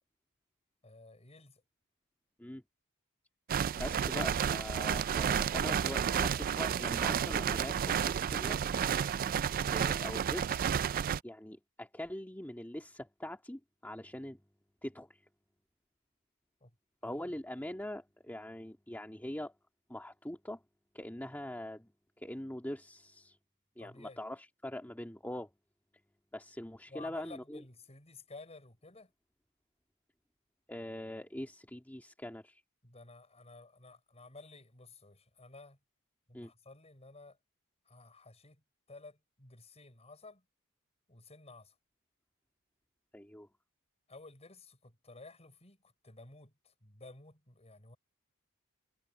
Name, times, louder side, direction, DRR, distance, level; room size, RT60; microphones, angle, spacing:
voice 1, 0.8-1.6 3.7-4.0 16.6-16.7 17.0-17.3 23.8-24.2 26.9-29.1 32.8-35.8 36.3-37.4 37.9-38.6 38.9-40.4 41.1-41.8 44.1-48.0, left 3 dB, 30° left, 5.5 m, -54 dB
sound 1, 3.5-11.2, right 8 dB, 40° right, 0.3 m, -31 dB
voice 2, 3.8-8.6 9.7-10.7 11.2-14.4 14.8-15.2 17.0-19.5 19.9-20.6 20.9-21.9 22.2-23.4 23.8-25.5 26.3-27.6 30.7-32.6 36.3-36.5 43.1-43.5, left 1 dB, 10° left, 1.9 m, -43 dB
head